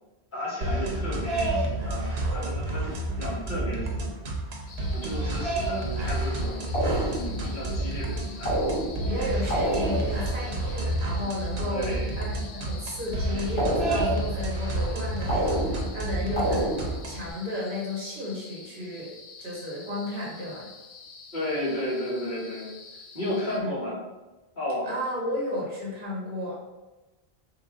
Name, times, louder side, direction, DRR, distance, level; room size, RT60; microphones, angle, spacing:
voice 1, 0.3-4.1 4.9-6.6 7.1-8.6 11.7-12.1 21.3-22.7 23.1-24.0 24.5-24.9, left 1 dB, 50° left, -7 dB, 1.4 m, -33 dB
sound 1, 0.6-17.3, right 1 dB, 80° right, 1.0 m, -30 dB
sound 2, 4.7-23.6, left 4 dB, 85° left, 0.9 m, -47 dB
sound 3, 6.7-7.5 8.5-9.2 9.5-10.2 13.6-14.3 15.3-16.0 16.4-17.1, right 1 dB, 30° left, 1.1 m, -28 dB
voice 2, 9.1-11.9 12.1-19.1 19.4-20.7 23.6-23.7 24.8-26.5, left 1 dB, 55° right, -5 dB, 1.4 m, -33 dB
3.7 x 2.9 x 3.6 m, 1.1 s
omnidirectional pair, 1.1 m